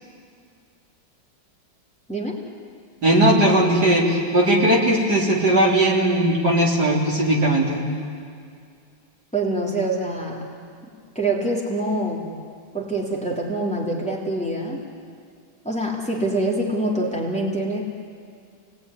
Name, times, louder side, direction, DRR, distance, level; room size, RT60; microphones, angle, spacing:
voice 1, 3.0-7.8, right 1 dB, 55° right, -2 dB, 4.0 m, -18 dB
voice 2, 9.3-10.5 11.1-12.3 12.7-14.8 15.6-17.8, right 1 dB, 5° left, -2 dB, 3.3 m, -25 dB
28.5 x 19.0 x 10.0 m, 2.3 s
omnidirectional pair, 2.1 m